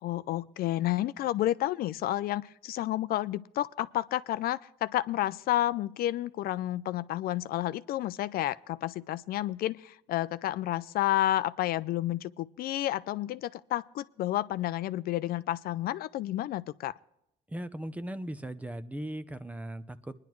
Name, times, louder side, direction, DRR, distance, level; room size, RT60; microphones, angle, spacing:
voice 1, 0.0-16.9, left 14 dB, 65° left, 0.4 m, -30 dB
voice 2, 17.5-20.1, right 1 dB, 10° right, 0.6 m, -38 dB
19.5 x 10.5 x 3.1 m
cardioid pair, 110°, 17 cm